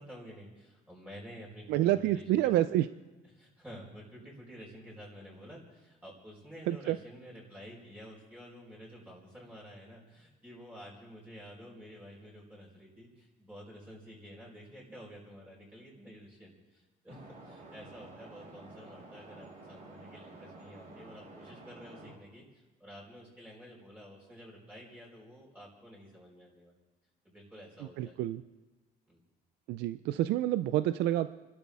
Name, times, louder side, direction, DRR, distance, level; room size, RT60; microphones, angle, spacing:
voice 1, 0.0-2.4 3.3-26.8 27.2-28.2 29.1-29.2, equal, 10° right, -5 dB, 4.8 m, -50 dB
voice 2, 1.7-2.9 6.7-7.0 28.0-28.4 29.7-31.3, right 14 dB, 85° right, 13 dB, 0.5 m, -28 dB
sound 1, 17.1-22.2, right 2 dB, 55° right, 4.0 m, -51 dB
30.0 x 12.5 x 3.6 m, 1.2 s
cardioid pair, 110°, 17 cm